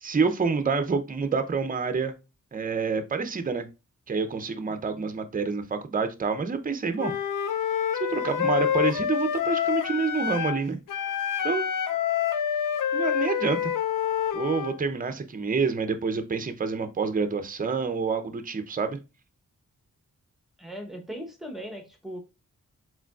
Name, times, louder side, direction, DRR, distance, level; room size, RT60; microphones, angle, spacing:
voice 1, 0.0-2.1 2.5-3.7 4.1-7.2 8.1-10.8 11.4-11.6 12.9-13.7 14.3-19.0, right 5 dB, 25° right, 0.5 m, -27 dB
voice 2, 4.7-5.1 20.6-22.2, equal, ahead, 0.8 m, -39 dB
Wind instrument woodwind instrument, 7.0-10.6 10.9-14.8, left 9 dB, 80° left, 0.5 m, -27 dB
4.9 x 3.7 x 2.3 m
wide cardioid pair, 170°, 31 cm